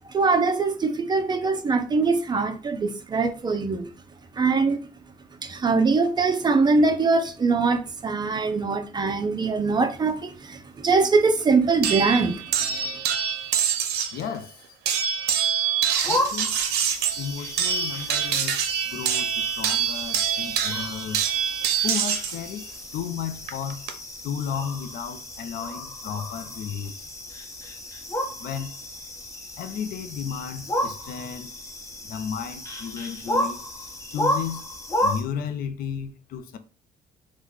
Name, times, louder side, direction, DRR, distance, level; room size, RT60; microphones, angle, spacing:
voice 1, 0.1-3.9 4.4-4.8 5.4-12.4, right 4 dB, 25° right, 0.4 m, -22 dB
sound 1, 11.8-14.2 14.9-22.4 23.5-23.9, right 8 dB, 80° right, 0.6 m, -25 dB
voice 2, 14.1-14.5 16.0-16.5 17.2-21.2 21.8-22.7 22.9-23.8 24.2-26.9 28.4-28.7 29.6-31.5 32.1-33.6 34.1-34.6 35.0-36.6, left 7 dB, 60° left, 0.5 m, -33 dB
sound 2, 15.9-35.2, left 1 dB, 15° left, 0.8 m, -33 dB
3.2 x 2.1 x 3.7 m
cardioid pair, 110°, 17 cm